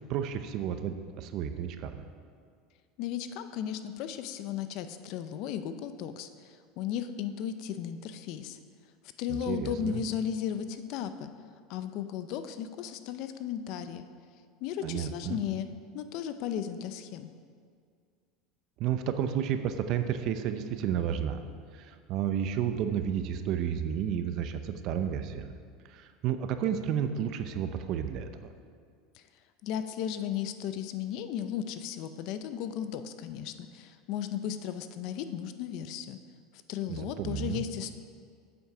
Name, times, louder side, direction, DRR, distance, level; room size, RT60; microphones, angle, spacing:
voice 1, 0.1-2.0 9.3-10.0 14.8-15.4 18.8-21.4 21.7-25.6 25.9-28.5 36.9-37.6, right 9 dB, 50° right, 8 dB, 0.6 m, -32 dB
voice 2, 3.0-8.6 9.2-11.3 11.7-14.1 14.6-15.7 15.9-17.3 29.2-29.3 29.6-36.2 36.7-37.9, left 9 dB, 55° left, 10 dB, 0.5 m, -35 dB
8.3 x 7.9 x 4.9 m, 2.1 s
supercardioid pair, 145°, 0 cm